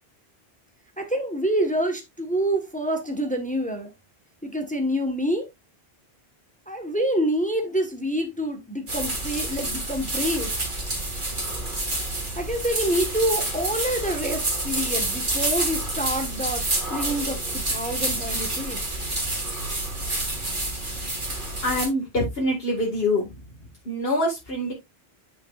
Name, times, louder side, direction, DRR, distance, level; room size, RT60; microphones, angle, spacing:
voice 1, 1.0-3.9 4.4-5.4 6.7-10.5 12.4-18.8, right 1 dB, 5° left, 1.3 m, -27 dB
sound 1, 8.9-21.9, right 2 dB, 50° right, 2.5 m, -28 dB
voice 2, 21.6-23.3 23.9-24.7, left 1 dB, 65° left, 2.2 m, -25 dB
8.9 x 6.5 x 2.4 m
omnidirectional pair, 1.1 m